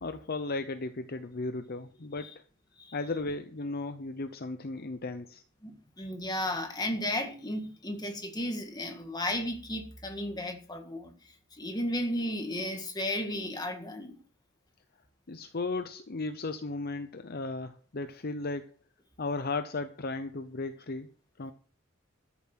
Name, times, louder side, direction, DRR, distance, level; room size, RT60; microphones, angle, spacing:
voice 1, 0.0-2.4 2.9-5.4 15.3-18.7 19.2-21.1 21.4-21.5, left 3 dB, 45° left, 0.7 m, -35 dB
voice 2, 5.6-14.2, left 1 dB, 20° left, 1.9 m, -34 dB
13.5 x 7.1 x 6.1 m
head